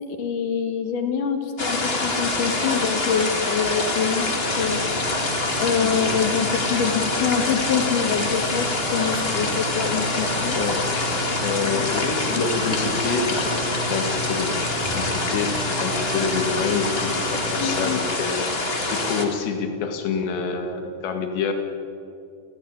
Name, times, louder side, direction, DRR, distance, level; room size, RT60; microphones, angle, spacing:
voice 1, 0.1-4.3 4.6-4.8 5.6-10.6 11.5-11.9 17.6-18.1, left 7 dB, 55° left, 5 dB, 3.2 m, -25 dB
sound 1, 1.6-19.2, left 2 dB, 25° left, 1.3 m, -25 dB
sound 2, 4.2-18.0, equal, 30° right, 4.9 m, -34 dB
voice 2, 10.6-10.9 11.4-14.6 14.9-21.5, left 5 dB, 90° left, 5 dB, 4.3 m, -27 dB
29.0 x 15.5 x 8.9 m, 2.6 s
omnidirectional pair, 4.8 m